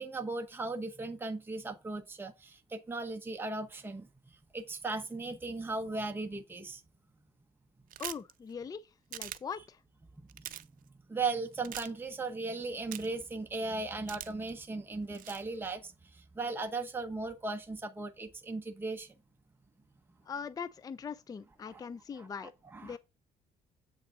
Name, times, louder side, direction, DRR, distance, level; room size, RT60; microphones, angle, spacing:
voice 1, 0.0-6.8 10.2-10.5 11.1-19.1 21.6-21.9 22.2-23.0, right 3 dB, 15° right, 0.9 m, -37 dB
sound 1, 7.9-8.3 9.1-9.4 10.3-10.6 11.6-11.9 12.9-13.2 14.1-14.5 15.1-15.4, right 12 dB, 55° right, 0.6 m, -41 dB
voice 2, 8.0-9.8 20.3-22.5 22.8-23.0, left 6 dB, 20° left, 0.4 m, -41 dB
8.0 x 3.8 x 5.0 m
cardioid pair, 110°, 17 cm